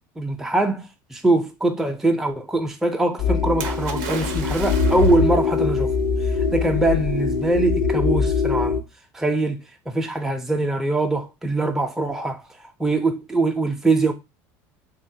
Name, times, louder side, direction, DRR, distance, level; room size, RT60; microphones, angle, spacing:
voice 1, 0.2-5.9 6.2-8.8 9.1-9.6 9.9-14.1, right 2 dB, 5° right, 0.4 m, -23 dB
sound 1, 3.2-8.8, left 5 dB, 65° left, 0.4 m, -22 dB
Splash splatter, 3.6-5.4 6.3-6.4, right 7 dB, 85° right, 0.5 m, -34 dB
3.0 x 2.1 x 2.6 m
supercardioid pair, 120°, 9 cm